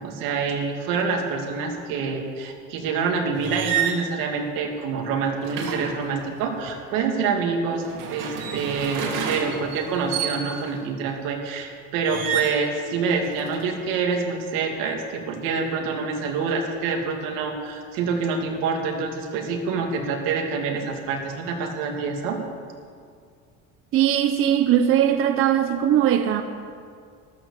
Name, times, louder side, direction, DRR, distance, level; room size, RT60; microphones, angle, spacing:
voice 1, 0.0-7.8 8.1-22.4, right 5 dB, 90° right, 2.5 m, -26 dB
sound 1, 3.3-4.0 5.4-6.7 7.7-10.8 12.0-12.7 13.1-13.7, right 7 dB, 65° right, 2.5 m, -30 dB
voice 2, 23.9-26.4, right 10 dB, 40° right, 0.7 m, -20 dB
14.0 x 12.5 x 7.0 m
cardioid pair, 170°, 33 cm